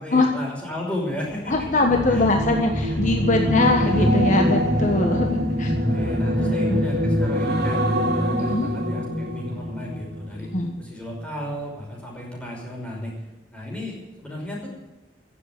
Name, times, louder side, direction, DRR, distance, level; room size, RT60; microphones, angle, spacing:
voice 1, 0.0-1.5 2.1-2.6 2.9-3.0 3.4-3.7 5.8-10.5 10.8-13.1 13.5-14.7, left 1 dB, 5° left, -3 dB, 5.6 m, -34 dB
sound 1, 1.4-10.8 11.2-11.5, equal, 65° right, 2.6 m, -24 dB
voice 2, 1.5-5.7 6.4-6.8 8.4-8.7 10.5-10.7, left 2 dB, 45° left, 3 dB, 1.3 m, -22 dB
16.0 x 7.7 x 9.4 m, 1.1 s
head